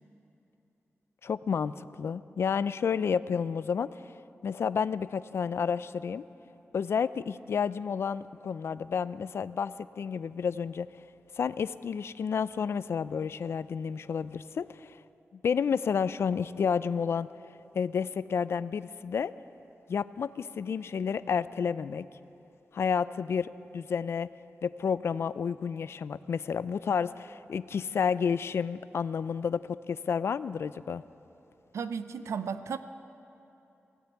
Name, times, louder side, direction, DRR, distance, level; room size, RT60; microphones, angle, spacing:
voice 1, 1.2-3.9 4.4-6.2 6.7-10.9 11.4-15.0 15.4-17.3 17.7-19.3 19.9-22.0 22.7-24.3 24.6-31.0, left 6 dB, 65° left, 16 dB, 0.3 m, -30 dB
voice 2, 31.7-32.8, right 6 dB, 85° right, 11 dB, 0.6 m, -34 dB
18.0 x 9.2 x 8.1 m, 2.9 s
wide cardioid pair, 160°, 5 cm